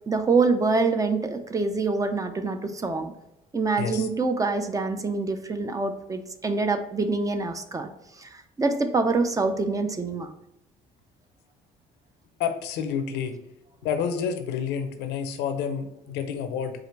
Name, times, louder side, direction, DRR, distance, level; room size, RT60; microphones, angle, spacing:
voice 1, 0.1-3.1 3.5-7.9 8.2-8.3 8.6-10.3, right 3 dB, 20° right, 8 dB, 0.4 m, -25 dB
voice 2, 12.4-13.3 13.8-16.7, left 7 dB, 85° left, 8 dB, 0.6 m, -29 dB
4.8 x 2.5 x 4.5 m, 0.86 s
cardioid pair, 110°, 17 cm